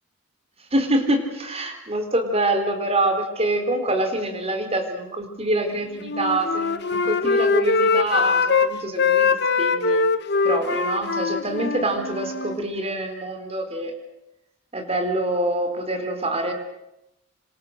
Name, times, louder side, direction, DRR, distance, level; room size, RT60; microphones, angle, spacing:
voice 1, 0.7-9.3 9.6-10.0 10.4-13.9 14.7-16.5, right 1 dB, 30° right, 6 dB, 4.1 m, -25 dB
Wind instrument woodwind instrument, 6.0-8.7 9.0-12.6, left 4 dB, 60° left, 1.3 m, -22 dB
27.0 x 26.0 x 6.6 m, 0.92 s
head